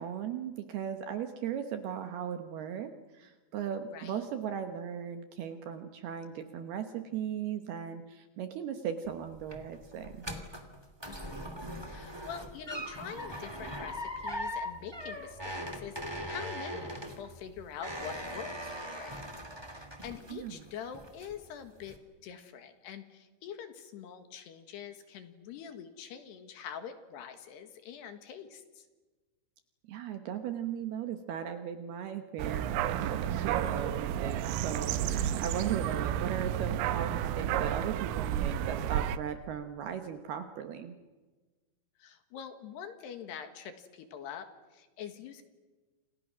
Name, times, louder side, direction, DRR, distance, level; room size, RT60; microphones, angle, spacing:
voice 1, 0.0-10.3 20.3-20.6 29.9-41.0, right 8 dB, 70° right, 8 dB, 2.5 m, -37 dB
voice 2, 3.9-4.2 11.0-11.6 11.8-19.2 19.7-22.0 22.2-28.9 42.0-45.4, left 8 dB, 65° left, 8 dB, 3.3 m, -45 dB
sound 1, 9.0-20.6 20.9-21.5 21.8-22.0, equal, 20° right, 0.6 m, -40 dB
sound 2, 32.4-39.2, right 10 dB, 90° right, 3.7 m, -31 dB
28.5 x 27.5 x 6.2 m, 1.3 s
omnidirectional pair, 5.7 m